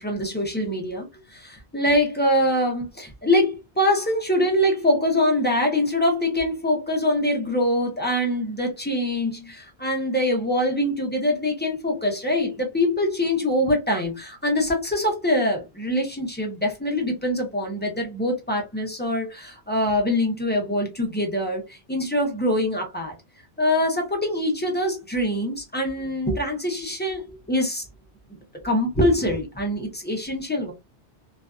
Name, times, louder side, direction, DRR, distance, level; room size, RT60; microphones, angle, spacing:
voice 1, 0.0-23.1 23.6-27.8 28.3-30.7, left 1 dB, 15° left, 0.5 m, -24 dB
2.5 x 2.4 x 2.2 m
omnidirectional pair, 1.1 m